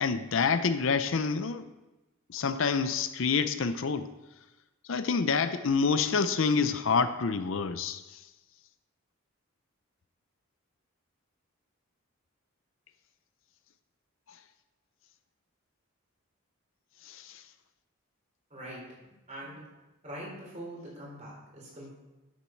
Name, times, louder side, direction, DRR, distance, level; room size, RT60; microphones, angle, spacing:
voice 1, 0.0-1.7 2.3-4.1 4.9-8.2 17.0-17.4, left 5 dB, 65° left, 11 dB, 0.5 m, -27 dB
voice 2, 18.5-18.8 19.1-19.6 20.0-21.9, right 1 dB, 35° right, -4 dB, 3.7 m, -43 dB
11.5 x 7.2 x 4.5 m, 1.0 s
head